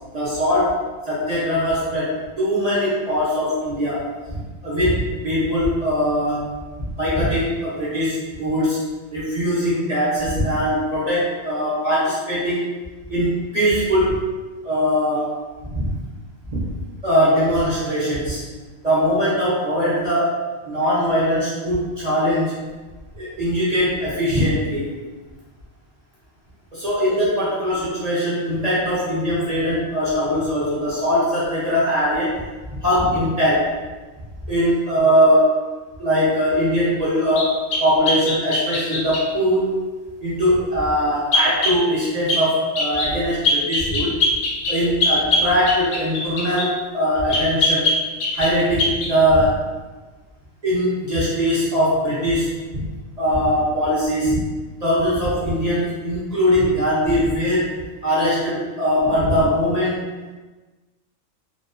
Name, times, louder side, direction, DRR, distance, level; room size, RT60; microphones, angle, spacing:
voice 1, 0.1-6.5 6.8-8.8 9.1-12.6 13.1-14.2 14.6-15.3 15.6-15.9 16.5-16.7 17.0-18.4 18.8-20.4 20.6-22.6 23.1-24.9 26.7-33.7 34.5-35.5 36.0-37.5 37.8-39.8 40.2-44.1 44.7-47.9 48.3-49.6 50.6-52.8 53.2-54.5 54.8-60.1, equal, 50° right, -9 dB, 0.5 m, -21 dB
sound 1, 37.4-39.3 41.3-41.8 42.3-42.5 42.8-43.1 43.4-46.7 47.3-48.5 48.8-49.1, left 2 dB, 70° left, 0.8 m, -21 dB
2.3 x 2.2 x 2.4 m, 1.3 s
omnidirectional pair, 1.4 m